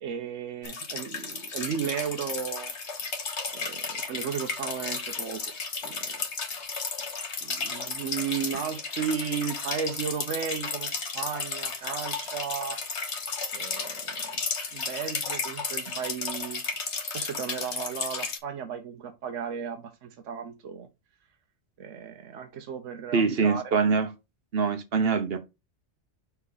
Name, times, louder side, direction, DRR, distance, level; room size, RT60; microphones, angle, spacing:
voice 1, 0.0-2.7 3.5-5.4 5.8-6.3 7.4-12.8 13.5-14.4 14.7-16.6 17.1-20.9 21.8-23.6, right 7 dB, 80° right, 1.2 m, -34 dB
sound 1, 0.6-18.4, left 4 dB, 65° left, 1.5 m, -34 dB
voice 2, 23.1-24.1 24.5-25.4, right 5 dB, 55° right, 1.0 m, -24 dB
5.8 x 4.6 x 4.0 m
omnidirectional pair, 1.2 m